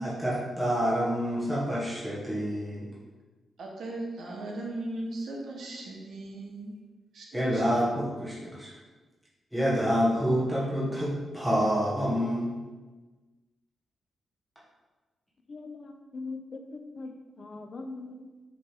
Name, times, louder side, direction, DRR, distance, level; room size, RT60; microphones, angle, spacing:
voice 1, 0.0-2.9 5.8-5.9 7.3-8.7 9.5-12.6, equal, ahead, -7 dB, 1.0 m, -28 dB
voice 2, 3.6-6.8 7.1-7.3 7.5-7.6, right 2 dB, 65° right, -1 dB, 0.8 m, -37 dB
voice 3, 15.5-18.4, left 3 dB, 45° left, 5 dB, 0.4 m, -41 dB
5.1 x 2.9 x 3.4 m, 1.3 s
wide cardioid pair, 135°, 0 cm